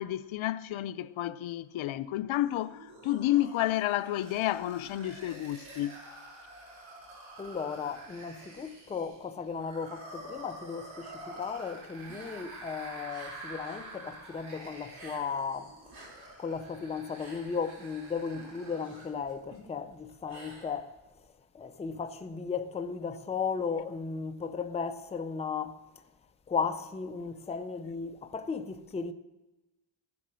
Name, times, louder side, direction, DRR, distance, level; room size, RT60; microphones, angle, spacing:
voice 1, 0.0-6.0, left 14 dB, 75° left, 0.6 m, -31 dB
sound 1, 2.3-19.0, right 2 dB, 75° right, 7.0 m, -48 dB
voice 2, 7.4-15.7 16.4-21.0 21.5-25.8 26.5-29.1, left 5 dB, 15° left, 0.5 m, -35 dB
sound 2, 12.1-13.9 14.2-15.5 15.8-21.2, right 1 dB, 50° right, 4.7 m, -52 dB
15.0 x 11.0 x 6.2 m
wide cardioid pair, 160°, 48 cm